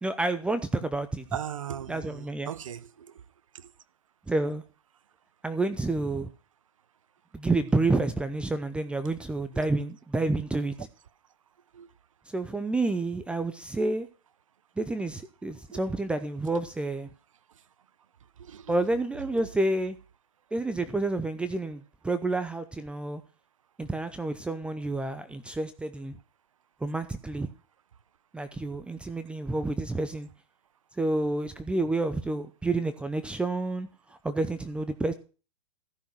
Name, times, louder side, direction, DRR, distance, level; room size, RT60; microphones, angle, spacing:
voice 1, 0.0-1.2 1.9-2.5 4.3-4.6 5.4-6.3 7.3-10.9 12.3-14.1 14.8-17.1 18.7-19.9 20.5-23.2 23.8-26.2 26.8-27.5 28.3-30.3 31.0-33.9 34.2-35.1, right 2 dB, 5° right, 0.7 m, -29 dB
voice 2, 1.3-3.2 3.5-3.7 9.5-9.7 11.7-11.9 15.7-15.8 18.4-18.8, right 9 dB, 70° right, 0.9 m, -38 dB
14.5 x 6.3 x 6.2 m
hypercardioid pair, 110°, 17 cm